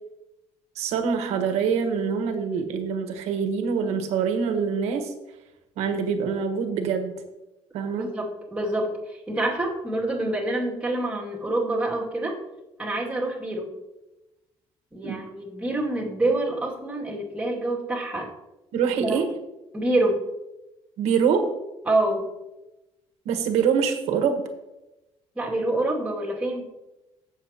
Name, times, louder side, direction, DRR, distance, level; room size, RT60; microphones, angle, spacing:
voice 1, 0.7-5.1 5.8-7.1 7.7-8.2 15.0-15.2 18.7-19.3 21.0-21.5 23.2-24.4, right 6 dB, 85° right, 6 dB, 1.3 m, -25 dB
voice 2, 8.0-8.9 9.3-12.4 12.8-13.7 14.9-18.3 19.0-19.2 19.7-20.2 21.9-22.3 25.4-26.7, right 2 dB, 10° right, -3 dB, 2.3 m, -26 dB
15.0 x 7.0 x 2.9 m, 0.99 s
cardioid pair, 140°, 11 cm